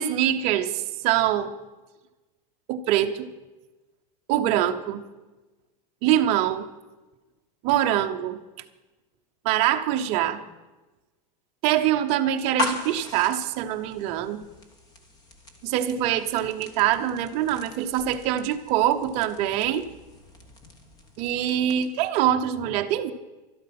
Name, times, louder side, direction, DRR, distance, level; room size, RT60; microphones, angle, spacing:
voice 1, 0.0-1.5 2.7-3.3 4.3-5.0 6.0-6.7 7.6-8.4 9.4-10.4 11.6-14.4 15.6-19.8 21.2-23.1, right 11 dB, 30° right, 7 dB, 0.8 m, -24 dB
sound 1, 12.4-22.1, left 1 dB, 20° left, 1.2 m, -38 dB
12.5 x 12.0 x 5.9 m, 1.1 s
supercardioid pair, 175°, 20 cm